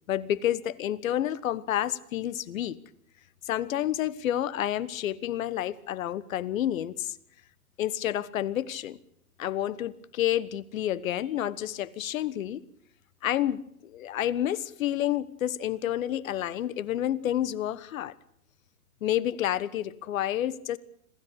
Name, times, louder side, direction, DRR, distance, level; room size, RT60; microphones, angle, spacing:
voice 1, 0.1-2.8 3.4-7.1 7.8-9.0 9.4-12.6 13.2-18.1 19.0-20.8, left 12 dB, 65° left, 1.4 m, -29 dB
26.5 x 16.0 x 8.2 m
hypercardioid pair, 115°, 44 cm